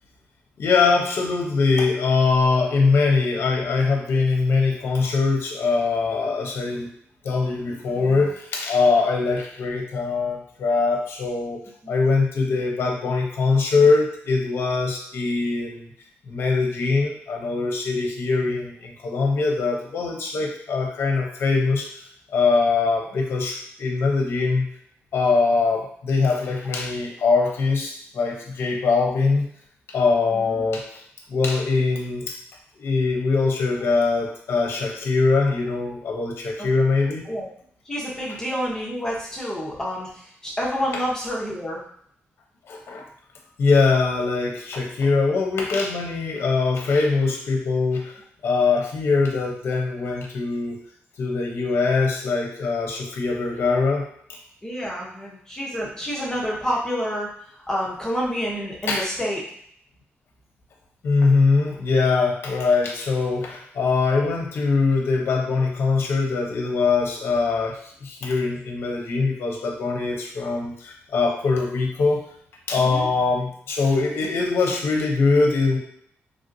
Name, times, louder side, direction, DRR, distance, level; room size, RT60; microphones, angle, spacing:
voice 1, 0.6-6.9 7.2-11.6 11.9-15.9 16.3-21.9 22.3-24.7 25.1-29.4 29.9-31.0 31.3-32.3 32.8-37.2 40.9-41.0 42.7-43.0 43.6-48.1 48.4-50.8 51.2-54.1 58.9-59.1 61.0-72.2 72.7-75.8, left 4 dB, 60° left, 1 dB, 0.7 m, -22 dB
voice 2, 37.9-41.8 54.6-57.3 57.7-59.4 72.8-73.1, equal, 15° left, -4 dB, 0.8 m, -28 dB
3.2 x 2.5 x 2.6 m, 0.67 s
cardioid pair, 115°, 5 cm